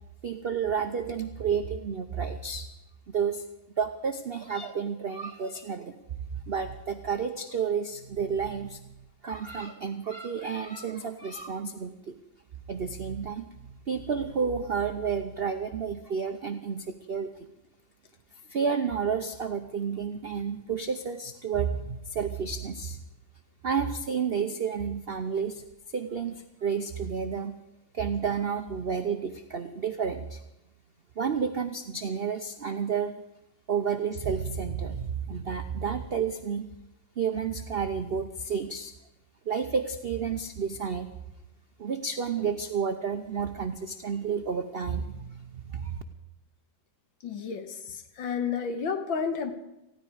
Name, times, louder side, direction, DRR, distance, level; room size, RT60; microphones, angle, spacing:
voice 1, 0.2-2.7 3.1-3.5 3.8-5.9 6.3-12.1 12.7-17.3 18.5-23.0 23.6-25.6 25.9-27.6 27.9-30.4 31.2-33.1 33.7-36.6 37.2-38.9 39.5-41.1 41.8-46.0, right 6 dB, 75° right, 8 dB, 0.5 m, -31 dB
voice 2, 47.2-49.5, left 6 dB, 85° left, 7 dB, 2.1 m, -31 dB
19.5 x 15.0 x 4.9 m, 0.93 s
omnidirectional pair, 2.1 m